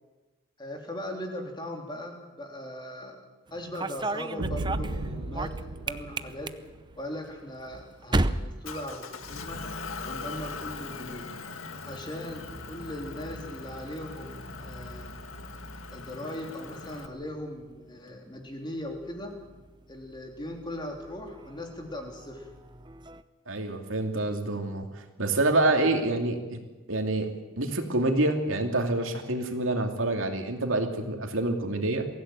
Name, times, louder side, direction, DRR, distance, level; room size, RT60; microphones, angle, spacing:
voice 1, 0.6-3.2 3.5-6.5 6.9-9.6 10.0-11.2 11.9-15.2 15.9-19.3 19.9-22.5 25.8-26.0, left 1 dB, 20° left, 2 dB, 3.4 m, -39 dB
sound 1, 3.5-9.7 9.9-10.5 11.6-23.2, right 2 dB, 20° right, 0.7 m, -38 dB
sound 2, 4.4-7.0, right 1 dB, 90° right, 1.3 m, -35 dB
Motor vehicle (road) / Engine, 8.6-17.1, left 4 dB, 80° left, 1.9 m, -41 dB
voice 2, 23.5-26.6 26.9-27.3 27.6-32.0, right 2 dB, 75° right, 4 dB, 2.8 m, -27 dB
23.0 x 16.0 x 9.2 m, 1.2 s
head